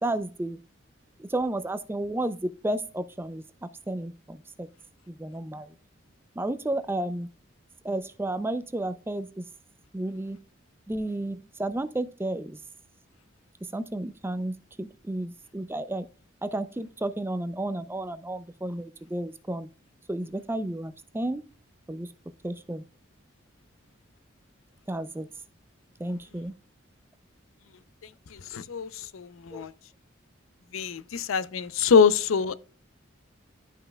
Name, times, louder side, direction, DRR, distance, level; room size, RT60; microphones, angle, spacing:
voice 1, 0.0-0.6 1.2-3.4 3.9-4.7 5.1-5.7 6.4-7.3 7.8-9.5 9.9-10.4 10.9-12.6 13.7-16.1 16.4-19.7 20.1-21.4 21.9-22.1 22.4-22.8 24.9-25.3 26.0-26.5 29.5-29.7, right 1 dB, 10° right, 0.4 m, -32 dB
voice 2, 28.3-29.7 30.7-32.5, left 6 dB, 90° left, 0.5 m, -24 dB
12.0 x 5.5 x 2.2 m
head